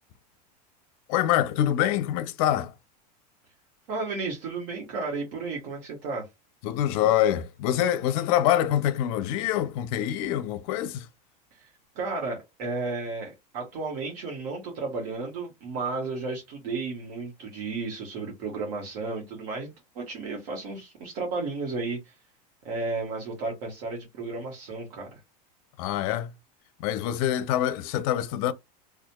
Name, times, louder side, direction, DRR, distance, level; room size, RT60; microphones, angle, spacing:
voice 1, 1.1-2.7 6.6-11.1 25.8-26.3 26.8-28.5, left 11 dB, 60° left, 0.5 m, -25 dB
voice 2, 3.9-6.2 11.5-11.7 11.9-22.1 22.6-25.1, right 3 dB, 60° right, 1.3 m, -33 dB
2.8 x 2.4 x 2.2 m
supercardioid pair, 135°, 21 cm